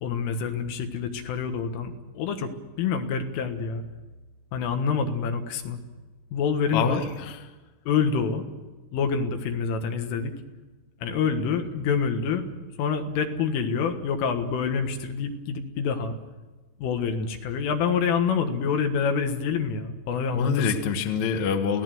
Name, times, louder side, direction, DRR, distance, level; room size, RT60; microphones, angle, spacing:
voice 1, 0.0-3.8 4.5-5.8 6.3-7.1 7.9-8.5 8.9-10.4 11.0-12.5 12.8-16.2 16.8-20.7, left 6 dB, 85° left, 6 dB, 4.1 m, -27 dB
voice 2, 6.7-7.4 20.3-21.8, left 6 dB, 60° left, 6 dB, 2.0 m, -26 dB
29.0 x 17.0 x 7.8 m, 1.2 s
omnidirectional pair, 5.6 m